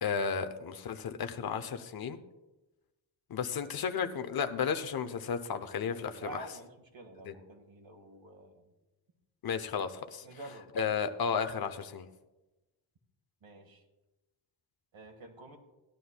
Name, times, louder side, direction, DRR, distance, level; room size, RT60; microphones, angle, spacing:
voice 1, 0.0-2.2 3.3-6.5 7.3-7.4 9.4-10.2 10.8-12.1, left 6 dB, 55° left, 9 dB, 0.7 m, -33 dB
voice 2, 6.2-8.6 10.2-10.7 13.4-13.8 14.9-15.6, right 3 dB, 80° right, 4 dB, 1.6 m, -48 dB
16.5 x 11.5 x 2.2 m, 1.1 s
wide cardioid pair, 140°, 45 cm